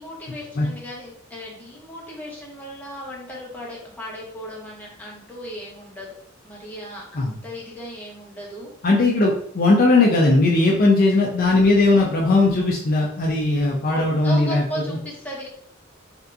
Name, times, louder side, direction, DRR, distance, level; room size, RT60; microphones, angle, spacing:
voice 1, 0.0-6.1 6.4-8.7 13.9-15.5, equal, 10° left, -5 dB, 0.9 m, -36 dB
voice 2, 8.8-15.0, left 2 dB, 45° left, -3 dB, 0.5 m, -18 dB
3.4 x 2.8 x 2.4 m, 0.64 s
head